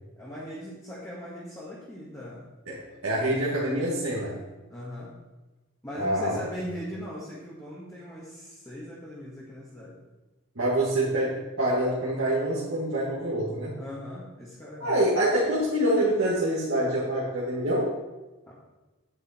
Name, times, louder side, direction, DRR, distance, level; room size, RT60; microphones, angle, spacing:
voice 1, 0.2-2.5 4.7-5.1 5.8-10.0 13.8-14.9 18.5-18.6, equal, 15° left, -7 dB, 1.8 m, -39 dB
voice 2, 2.7-4.4 5.9-6.4 10.6-13.7 14.8-18.0, right 1 dB, 75° right, -7 dB, 2.2 m, -26 dB
9.6 x 8.4 x 4.5 m, 1.1 s
head